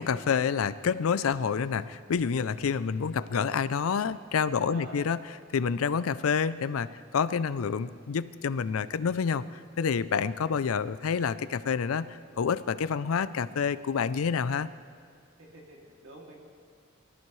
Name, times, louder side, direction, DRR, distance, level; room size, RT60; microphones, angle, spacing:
voice 1, 0.0-5.2 5.5-6.9 7.1-14.7, left 6 dB, 90° left, 16 dB, 0.4 m, -28 dB
voice 2, 4.4-5.0 15.4-16.4, right 1 dB, 85° right, -1 dB, 2.6 m, -47 dB
23.0 x 13.5 x 3.2 m, 2.3 s
head